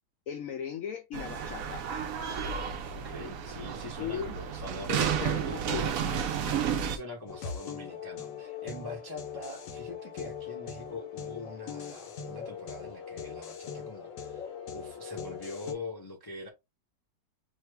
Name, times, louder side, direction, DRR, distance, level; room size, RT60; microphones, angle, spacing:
voice 1, 0.3-1.8 4.0-4.3 4.9-5.9, left 8 dB, 80° left, 0.7 m, -37 dB
sound 1, 1.1-7.0, right 7 dB, 80° right, 0.7 m, -32 dB
voice 2, 2.9-5.8 6.8-16.5, left 2 dB, 30° left, 0.4 m, -43 dB
sound 2, 7.3-15.7, left 7 dB, 60° left, 1.0 m, -41 dB
2.9 x 2.8 x 3.3 m
omnidirectional pair, 2.0 m